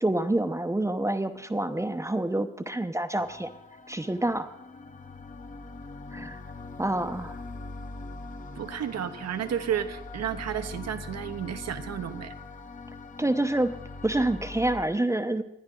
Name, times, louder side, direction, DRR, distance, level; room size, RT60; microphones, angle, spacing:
voice 1, 0.0-3.5 3.9-4.5 6.1-6.4 6.8-7.4 13.2-13.7 14.0-15.4, right 1 dB, 10° right, 8 dB, 0.9 m, -27 dB
sound 1, 3.1-14.8, left 3 dB, 25° left, 1.0 m, -42 dB
voice 2, 8.6-12.3, right 9 dB, 60° right, 9 dB, 1.1 m, -32 dB
20.0 x 11.0 x 3.9 m, 0.83 s
cardioid pair, 90°, 30 cm